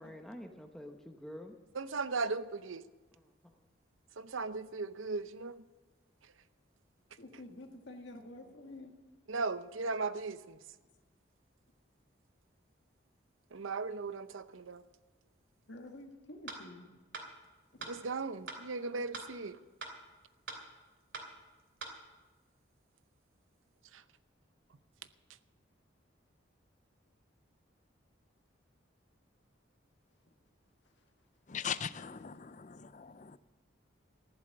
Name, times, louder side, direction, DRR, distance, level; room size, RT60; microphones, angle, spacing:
voice 1, 0.0-1.5 3.1-3.5, equal, ahead, 0.9 m, -48 dB
voice 2, 1.8-2.8 4.2-5.6 9.3-10.6 13.5-14.8 17.9-19.6, right 4 dB, 85° right, 0.7 m, -37 dB
voice 3, 7.2-8.9 15.7-16.9 17.8-18.0, left 1 dB, 65° left, 1.7 m, -49 dB
sound 1, 16.5-16.6 17.1-17.3 17.8-17.9 18.5-18.6 19.1-19.3 19.8-19.9 20.5-20.6 21.1-21.3 21.8-21.9, right 3 dB, 65° right, 2.7 m, -42 dB
voice 4, 31.5-33.4, left 7 dB, 40° left, 0.5 m, -40 dB
14.5 x 11.5 x 6.6 m
head